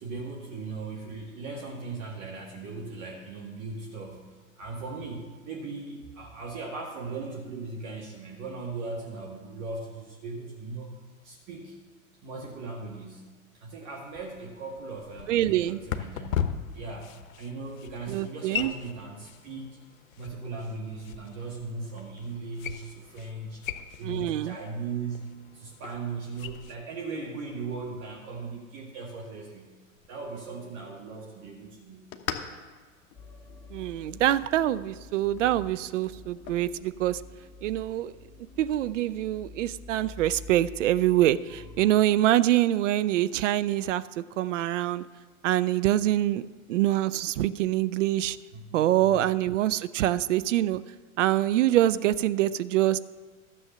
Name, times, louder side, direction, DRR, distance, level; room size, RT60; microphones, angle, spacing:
voice 1, 0.0-10.9 11.2-11.8 12.2-13.3 13.5-16.4 16.7-19.8 20.2-23.6 24.0-25.2 25.5-29.8 30.1-32.1 48.5-49.2, right 3 dB, 40° right, -1 dB, 2.0 m, -38 dB
sound 1, 14.1-26.8, left 9 dB, 70° left, 0.9 m, -39 dB
voice 2, 15.3-15.8 18.1-18.7 24.0-24.5 33.7-37.2 37.6-38.1 38.6-45.0 45.4-46.4 46.7-48.4 48.7-50.8 51.2-53.0, right 13 dB, 60° right, 16 dB, 0.6 m, -25 dB
sound 2, 29.9-38.9, left 8 dB, 35° left, 1.1 m, -45 dB
sound 3, 33.2-41.9, left 3 dB, 5° left, 2.7 m, -48 dB
12.5 x 7.2 x 6.7 m, 1.5 s
figure-of-eight pair, 95°, 42 cm